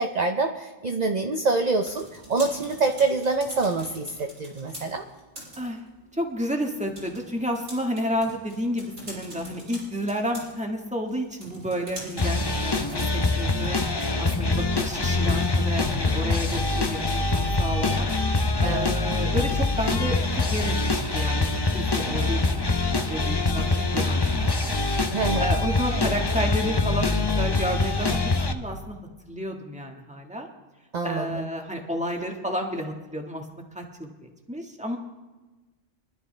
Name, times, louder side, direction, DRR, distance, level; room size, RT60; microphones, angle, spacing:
voice 1, 0.0-5.0 18.6-18.9 25.1-25.5 30.9-31.5, right 3 dB, 40° right, 5 dB, 0.8 m, -26 dB
sound 1, 1.6-14.1, right 1 dB, 85° right, 5.9 m, -45 dB
voice 2, 6.1-13.8 14.2-18.1 18.6-24.8 25.4-27.1 27.3-29.0 29.3-30.5 31.0-33.4 33.7-35.0, equal, 5° right, 2 dB, 1.5 m, -31 dB
sound 2, 12.2-28.5, left 3 dB, 25° left, 0.6 m, -24 dB
24.5 x 12.0 x 3.3 m, 1.2 s
omnidirectional pair, 1.4 m